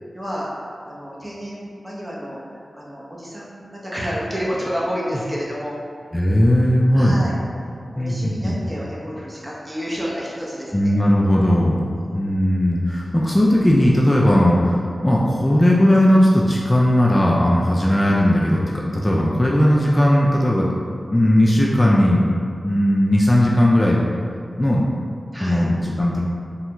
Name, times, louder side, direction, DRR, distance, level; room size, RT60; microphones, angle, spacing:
voice 1, 0.1-5.8 6.9-7.3 7.9-10.9 11.8-12.2 25.3-25.6, equal, 20° right, -6 dB, 0.8 m, -30 dB
voice 2, 6.1-7.2 8.0-8.6 10.7-11.8 12.1-20.7 21.1-22.4 22.6-24.0 24.6-24.9 25.4-26.2, left 1 dB, 25° left, -4 dB, 0.3 m, -17 dB
3.1 x 2.3 x 2.9 m, 2.3 s
cardioid pair, 45°, 0 cm